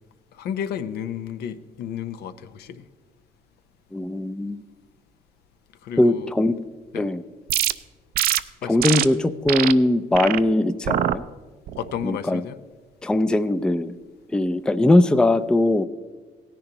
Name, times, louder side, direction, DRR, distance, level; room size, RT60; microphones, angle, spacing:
voice 1, 0.3-2.9 5.8-6.3 6.9-7.1 8.6-8.9 11.8-12.6, left 9 dB, 75° left, 11 dB, 0.7 m, -32 dB
voice 2, 3.9-4.6 6.0-6.5 6.9-7.2 8.7-11.2 12.0-12.4 13.0-13.9 14.3-15.8, left 1 dB, 5° left, 12 dB, 0.4 m, -20 dB
sound 1, 7.5-7.7 8.1-8.4 8.8-9.0 9.5-9.7 10.1-10.4 10.8-11.2 11.7-12.0, right 12 dB, 60° right, 0.5 m, -23 dB
17.0 x 10.5 x 2.9 m, 1.4 s
cardioid pair, 110°, 17 cm